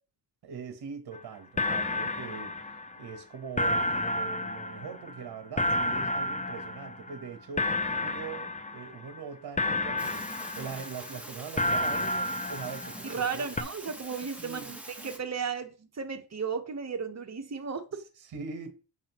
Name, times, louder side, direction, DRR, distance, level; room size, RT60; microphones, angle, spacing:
voice 1, 0.4-2.6 3.0-10.3 10.5-13.4 14.4-14.8 18.2-18.7, right 6 dB, 60° right, 1.1 m, -41 dB
sound 1, 1.1-1.2 1.6-3.2 3.6-7.3 7.6-9.2 9.6-11.2 11.6-13.3 13.6-13.7, left 1 dB, 15° left, 0.6 m, -31 dB
sound 2, 10.0-15.2, right 1 dB, 5° right, 1.3 m, -44 dB
voice 2, 13.0-18.0, right 6 dB, 35° right, 1.1 m, -35 dB
7.4 x 5.7 x 3.0 m
cardioid pair, 90°, 43 cm